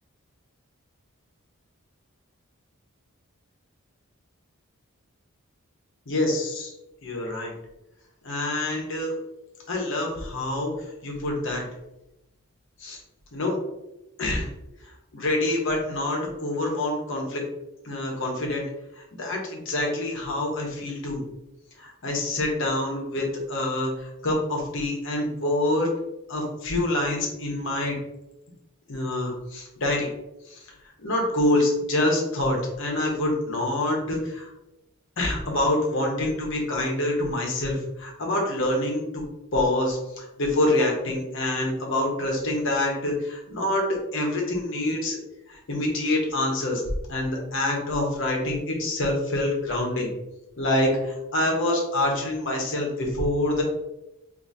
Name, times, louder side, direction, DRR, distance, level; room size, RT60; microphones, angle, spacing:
voice 1, 6.1-6.7 7.0-7.5 8.2-9.1 9.7-10.7 11.0-11.6 12.8-13.0 13.3-13.5 14.2-14.5 15.1-17.4 17.8-18.6 19.0-21.2 21.8-25.9 26.3-28.0 28.9-30.1 30.5-30.6 31.0-34.5 35.2-39.2 39.5-43.8 44.1-45.2 45.5-46.8 47.1-50.1 50.6-53.6, left 1 dB, 60° left, -1 dB, 1.0 m, -26 dB
3.8 x 2.7 x 2.7 m, 0.92 s
head